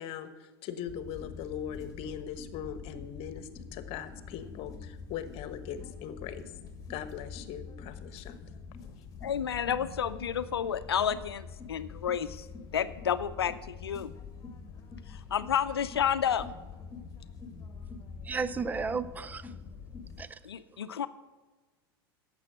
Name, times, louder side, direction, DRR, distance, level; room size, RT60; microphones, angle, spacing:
voice 1, 0.0-6.5 6.9-8.4, left 9 dB, 50° left, 12 dB, 1.3 m, -40 dB
sound 1, 0.9-20.2, left 5 dB, 30° left, 2.0 m, -45 dB
voice 2, 9.2-12.5 12.7-14.1 15.1-16.5 20.4-21.1, left 8 dB, 90° left, 13 dB, 0.6 m, -30 dB
voice 3, 18.2-19.5 20.2-20.4, right 5 dB, 15° right, 16 dB, 0.5 m, -33 dB
11.5 x 7.7 x 7.7 m, 1.2 s
hypercardioid pair, 95°, 13 cm